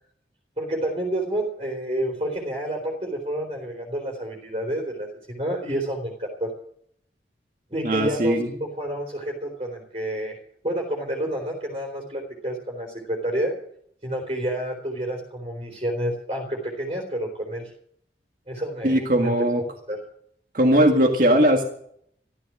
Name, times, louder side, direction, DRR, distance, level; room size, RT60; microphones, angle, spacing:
voice 1, 0.6-6.5 7.7-10.4 10.6-13.6 14.0-17.7 18.5-20.0, right 1 dB, 35° right, 0 dB, 3.5 m, -29 dB
voice 2, 7.8-8.5 18.8-19.6 20.5-21.6, right 1 dB, 50° right, 2 dB, 1.9 m, -19 dB
14.0 x 13.5 x 6.2 m, 0.66 s
head